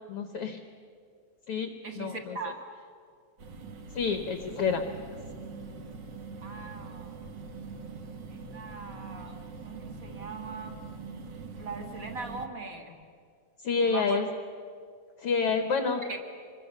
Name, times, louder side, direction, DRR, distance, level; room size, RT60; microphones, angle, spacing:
voice 1, 0.1-0.6 1.5-2.4 3.9-4.8 13.6-14.3 15.2-16.0, left 5 dB, 60° left, 7 dB, 1.7 m, -28 dB
voice 2, 1.8-2.5 6.4-7.1 8.3-10.7 11.6-12.9 13.8-14.2 16.1-16.2, right 4 dB, 30° right, 4 dB, 2.0 m, -40 dB
sound 1, 3.4-12.5, right 4 dB, 50° right, 1.5 m, -43 dB
26.0 x 22.0 x 6.7 m, 2.2 s
omnidirectional pair, 3.5 m